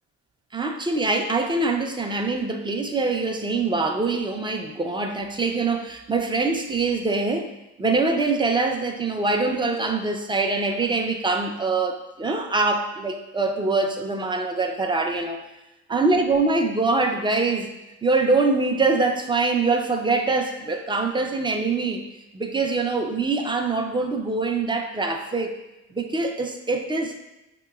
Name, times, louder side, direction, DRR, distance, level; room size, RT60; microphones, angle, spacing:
voice 1, 0.5-7.5 7.8-15.4 15.9-17.7 18.0-22.0 22.3-25.6 25.9-27.3, right 3 dB, 15° right, 4 dB, 0.5 m, -24 dB
5.6 x 2.9 x 2.3 m, 0.97 s
cardioid pair, 90°, 30 cm